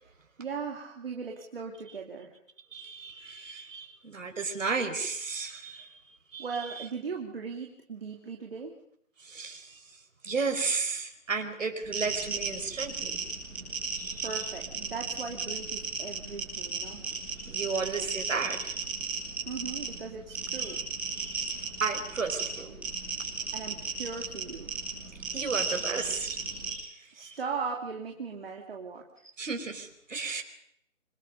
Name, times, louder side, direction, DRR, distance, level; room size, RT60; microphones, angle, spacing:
voice 1, 0.4-2.3 6.4-8.8 14.2-17.0 19.5-20.8 23.5-24.7 27.1-29.0, right 5 dB, 45° right, 2 dB, 2.7 m, -38 dB
voice 2, 2.7-5.9 6.3-6.5 9.2-9.8 10.2-13.2 13.9-14.3 17.1-18.8 20.6-20.8 21.1-22.7 25.3-26.9 27.2-27.4 29.4-30.4, right 4 dB, 70° right, 5 dB, 4.8 m, -34 dB
sound 1, 11.8-26.7, right 4 dB, 5° right, 3.6 m, -35 dB
26.5 x 24.0 x 5.4 m, 0.71 s
hypercardioid pair, 170°, 40 cm